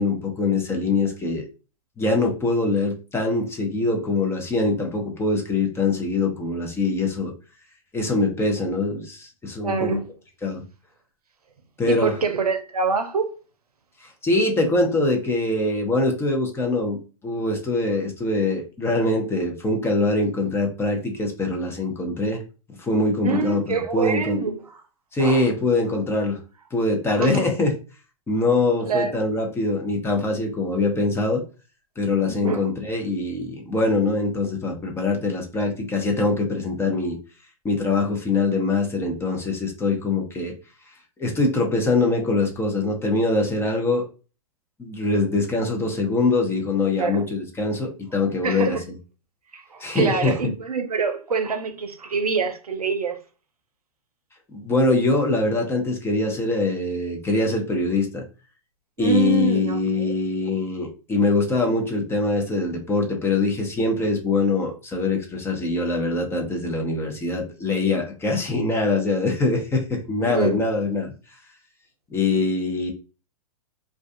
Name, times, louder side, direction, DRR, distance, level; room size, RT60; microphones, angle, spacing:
voice 1, 0.0-1.5 2.0-7.3 7.9-10.0 10.4-10.6 11.8-12.1 14.0-22.4 22.8-24.4 25.1-26.4 26.7-27.7 28.3-31.4 32.0-37.2 37.6-40.5 41.2-44.0 44.8-48.8 49.8-50.3 54.5-58.2 59.0-71.1 72.1-72.9, left 2 dB, 15° left, 0.6 m, -23 dB
voice 2, 9.6-10.0 11.9-13.3 23.2-24.6 25.2-25.5 27.2-27.4 28.8-29.2 32.2-32.7 47.0-47.3 48.4-48.8 49.5-53.2 59.0-59.8 70.2-70.6, right 5 dB, 85° right, 0.6 m, -25 dB
2.4 x 2.4 x 2.5 m
hypercardioid pair, 105°, 19 cm